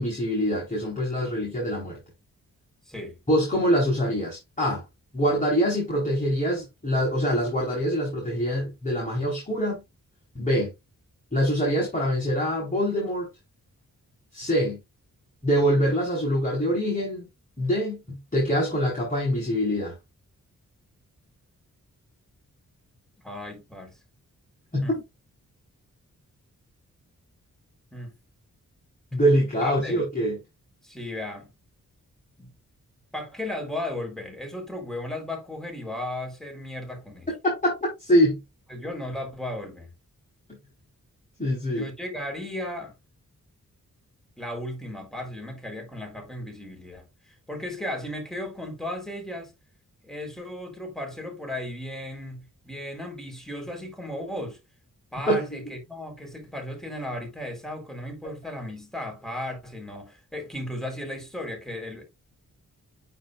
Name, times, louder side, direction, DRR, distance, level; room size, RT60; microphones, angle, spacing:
voice 1, 0.0-2.0 3.3-4.8 5.1-9.8 10.3-10.7 11.3-13.3 14.3-14.8 15.4-17.3 17.6-20.0 24.7-25.0 29.1-30.4 37.4-38.4 41.4-41.9 55.3-55.5, equal, 25° left, 4.5 m, -24 dB
voice 2, 2.9-3.2 23.2-24.0 24.8-24.9 27.9-28.1 29.6-30.0 30.8-31.5 32.4-32.5 33.1-37.3 38.7-39.9 41.7-42.9 44.4-49.5 50.0-54.6 55.1-62.0, left 1 dB, ahead, 4.0 m, -35 dB
9.2 x 4.4 x 2.5 m
cardioid pair, 50°, 34 cm